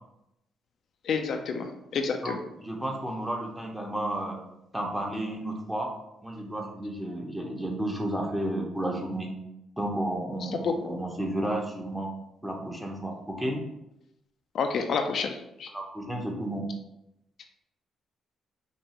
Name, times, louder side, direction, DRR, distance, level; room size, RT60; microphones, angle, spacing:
voice 1, 1.0-2.4 10.6-10.7 14.5-15.7, left 5 dB, 65° left, 5 dB, 0.4 m, -29 dB
voice 2, 2.2-4.4 4.7-5.9 6.2-9.3 9.8-12.1 12.4-13.6 15.7-16.7, right 1 dB, 10° right, 0 dB, 0.9 m, -32 dB
5.2 x 2.4 x 2.9 m, 0.86 s
cardioid pair, 90°, 0 cm